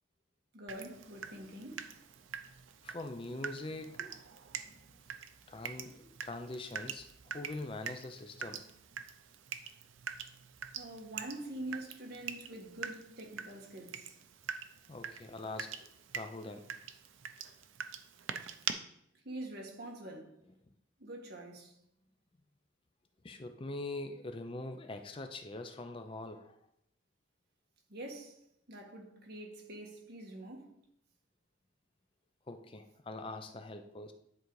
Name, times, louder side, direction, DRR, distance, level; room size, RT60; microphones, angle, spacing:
voice 1, 0.5-1.8 10.7-14.2 19.2-20.4 21.0-21.8 27.9-28.4 28.7-30.7, right 1 dB, 55° right, 1.7 m, -45 dB
Water tap faucet / Drip, 0.7-18.7, right 7 dB, 80° right, 0.6 m, -45 dB
voice 2, 2.8-4.1 5.5-7.1 7.3-8.6 14.9-16.6 23.2-26.6 32.5-34.1, left 2 dB, 25° left, 0.5 m, -43 dB
10.5 x 3.9 x 4.7 m
head